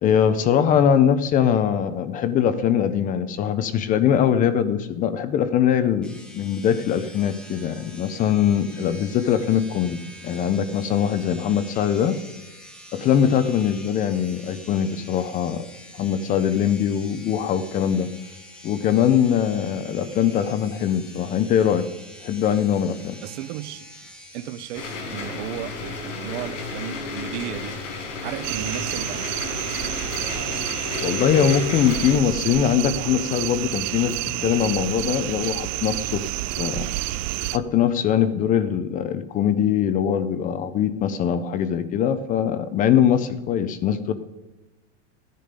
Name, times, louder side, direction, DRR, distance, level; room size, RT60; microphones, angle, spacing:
voice 1, 0.0-12.2 12.9-15.7 15.9-18.1 18.6-21.9 22.2-23.2 31.0-36.3 36.6-36.9 37.5-44.1, left 9 dB, 20° left, 12 dB, 0.5 m, -22 dB
sound 1, 6.0-24.9, equal, 5° left, 1.6 m, -45 dB
voice 2, 23.2-23.9 24.3-27.7 28.2-29.5, right 11 dB, 65° right, 16 dB, 0.8 m, -34 dB
sound 2, 24.7-32.2, left 4 dB, 90° left, 5.2 m, -32 dB
sound 3, 28.4-37.6, right 16 dB, 40° right, 0.5 m, -29 dB
15.5 x 10.5 x 5.2 m, 1.1 s
supercardioid pair, 155°, 37 cm